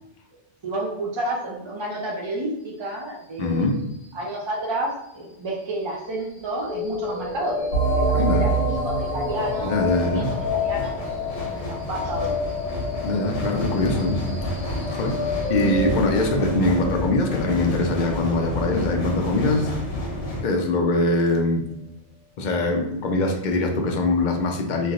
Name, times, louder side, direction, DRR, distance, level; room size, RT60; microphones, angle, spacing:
voice 1, 0.6-3.6 4.1-9.7 10.1-10.2 10.5-10.9 11.3-12.3 15.6-15.9, right 1 dB, 50° right, -2 dB, 0.3 m, -30 dB
voice 2, 3.4-3.8 8.1-8.5 9.6-10.3 13.0-14.4 14.9-15.2 15.5-19.7 20.4-21.6 22.4-24.9, left 2 dB, 55° left, 3 dB, 0.5 m, -23 dB
sound 1, 6.6-20.6, left 4 dB, 15° left, 0.9 m, -31 dB
sound 2, 7.0-7.2 8.2-20.4, left 1 dB, 80° left, 1.0 m, -31 dB
sound 3, 7.7-13.0, right 5 dB, 90° right, 1.3 m, -27 dB
3.2 x 2.6 x 2.4 m, 0.84 s
omnidirectional pair, 1.2 m